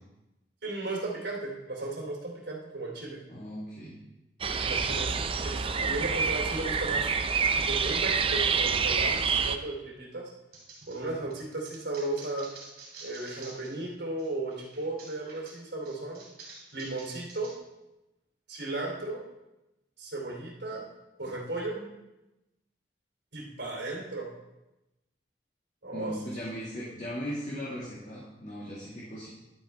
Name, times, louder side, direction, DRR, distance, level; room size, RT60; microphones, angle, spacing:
voice 1, 0.6-3.2 4.6-7.1 7.5-10.3 10.9-12.5 13.0-16.2 16.7-17.5 18.5-19.2 20.0-20.9 21.2-21.9 23.3-24.3 25.8-26.2, right 2 dB, 75° right, -2 dB, 2.7 m, -35 dB
voice 2, 3.3-4.0 25.9-29.3, equal, 40° left, -7 dB, 1.9 m, -38 dB
sound 1, 4.4-9.6, right 5 dB, 30° right, 0.4 m, -27 dB
sound 2, 10.5-13.8 14.2-17.5, right 3 dB, 55° right, 3.2 m, -49 dB
11.5 x 8.5 x 3.4 m, 0.97 s
head